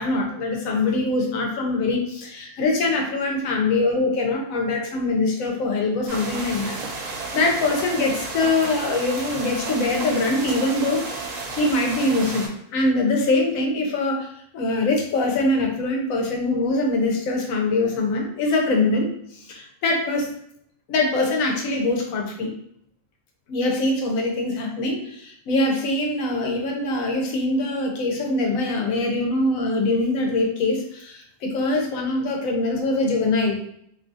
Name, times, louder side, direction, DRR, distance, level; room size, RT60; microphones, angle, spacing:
voice 1, 0.0-19.1 19.3-20.4 20.9-22.5 23.5-33.6, left 2 dB, 90° left, 1 dB, 1.0 m, -23 dB
sound 1, 6.1-12.5, right 3 dB, 80° right, 1.0 m, -32 dB
2.6 x 2.4 x 2.5 m, 0.69 s
omnidirectional pair, 1.4 m